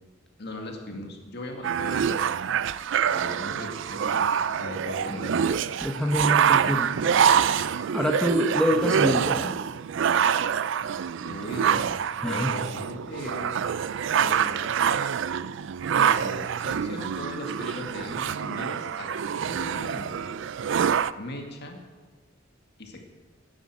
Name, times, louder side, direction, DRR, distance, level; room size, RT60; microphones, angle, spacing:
voice 1, 0.4-2.0 3.0-4.3 4.6-5.4 11.2-12.0 12.2-13.6 14.2-14.7 15.9-20.3 21.2-21.8 22.8-23.0, left 1 dB, 55° left, 3 dB, 2.1 m, -38 dB
sound 1, 1.6-21.1, right 8 dB, 65° right, 0.4 m, -26 dB
voice 2, 5.8-6.9 7.9-9.5 12.2-12.6, equal, 5° left, 2 dB, 0.9 m, -26 dB
12.5 x 9.6 x 7.7 m, 1.4 s
head